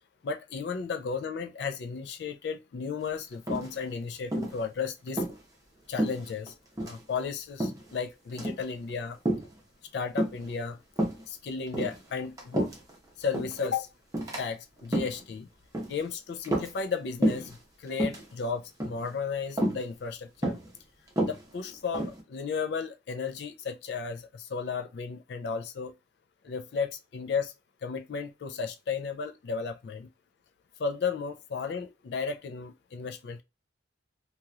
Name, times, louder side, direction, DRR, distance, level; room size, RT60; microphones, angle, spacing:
voice 1, 0.2-5.2 5.9-6.5 6.8-9.2 9.9-10.8 11.3-12.7 13.2-13.9 14.4-15.5 15.9-20.6 21.2-25.9 26.4-27.5 27.8-30.1 30.8-33.4, left 5 dB, 65° left, 0.3 m, -34 dB
sound 1, 3.5-4.0 4.3-4.6 5.1-5.4 6.0-6.5 6.8-7.0 7.6-7.9 8.3-8.6 9.3-9.5 10.2-10.5 11.0-11.2 11.7-12.9 13.3-13.6 14.1-14.4 14.8-15.2 15.7-16.0 16.4-17.0 17.2-17.5 17.9-18.2 18.8-19.1 19.6-19.8 20.4-20.7 21.1-22.2, right 1 dB, 20° right, 0.8 m, -29 dB
2.9 x 2.9 x 2.3 m
head